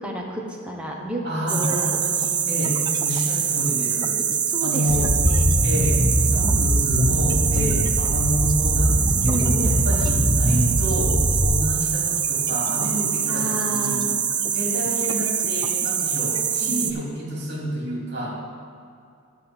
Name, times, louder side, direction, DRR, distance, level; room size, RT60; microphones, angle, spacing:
voice 1, 0.0-1.2 1.5-2.0 4.5-5.4 7.6-7.8 9.3-9.9 13.3-14.2 16.6-17.1, right 1 dB, 5° right, -1 dB, 1.1 m, -31 dB
voice 2, 1.2-4.3 4.6-5.2 5.6-14.1 14.5-18.4, equal, 50° right, -3 dB, 2.6 m, -29 dB
sound 1, 1.5-16.9, right 8 dB, 20° right, 0.4 m, -24 dB
sound 2, 4.9-11.4, equal, 75° right, 1.7 m, -22 dB
12.5 x 4.3 x 7.2 m, 2.4 s
head